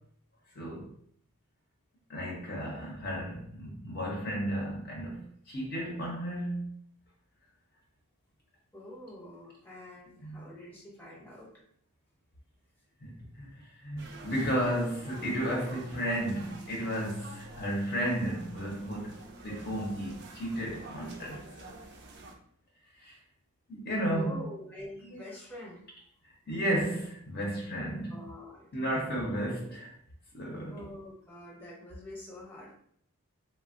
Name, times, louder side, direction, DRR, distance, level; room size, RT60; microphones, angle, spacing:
voice 1, 0.6-0.9 2.1-6.8 10.2-10.4 13.0-21.7 23.0-23.2 23.7-24.4 25.0-25.2 26.2-28.2 28.7-29.9 30.3-30.8, equal, 45° left, -2 dB, 0.6 m, -33 dB
voice 2, 8.7-11.5 24.1-25.8 27.8-29.1 30.7-32.7, left 1 dB, 10° left, -4 dB, 0.8 m, -46 dB
sound 1, 14.0-22.3, right 2 dB, 50° right, 0.4 m, -48 dB
3.2 x 2.1 x 2.4 m, 0.64 s
head